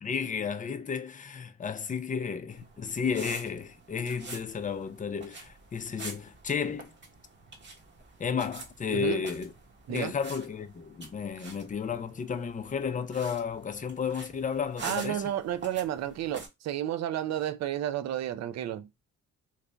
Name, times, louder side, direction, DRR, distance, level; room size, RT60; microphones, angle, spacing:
voice 1, 0.0-6.9 8.2-9.5 9.9-15.2, left 6 dB, 25° left, 0.6 m, -33 dB
sound 1, 2.5-16.5, right 3 dB, 40° right, 1.2 m, -47 dB
voice 2, 8.9-9.3 9.9-10.1 14.8-19.0, right 11 dB, 60° right, 0.5 m, -32 dB
3.2 x 2.5 x 3.3 m
cardioid pair, 90°, 30 cm